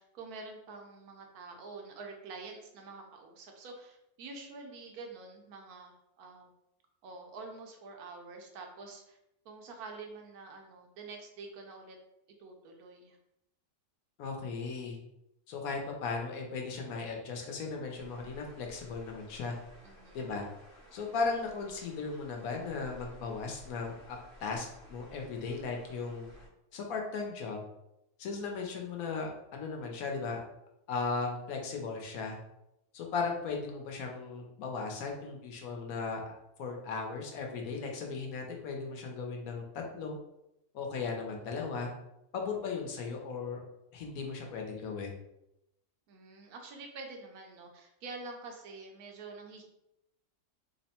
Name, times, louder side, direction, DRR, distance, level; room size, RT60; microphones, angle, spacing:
voice 1, 0.0-6.5 7.0-9.2 9.4-12.0 12.4-13.2 19.8-20.2 46.1-49.6, right 3 dB, 75° right, 2 dB, 1.2 m, -47 dB
voice 2, 14.2-15.0 15.5-19.6 20.1-20.5 20.9-26.3 26.7-27.6 28.2-30.4 30.9-32.4 32.9-36.3 36.6-40.2 40.7-41.9 42.3-43.6 43.9-45.1, left 4 dB, 70° left, 1 dB, 1.1 m, -37 dB
sound 1, 18.0-26.5, left 1 dB, 45° right, 1.6 m, -55 dB
3.4 x 2.0 x 4.1 m, 0.86 s
omnidirectional pair, 1.6 m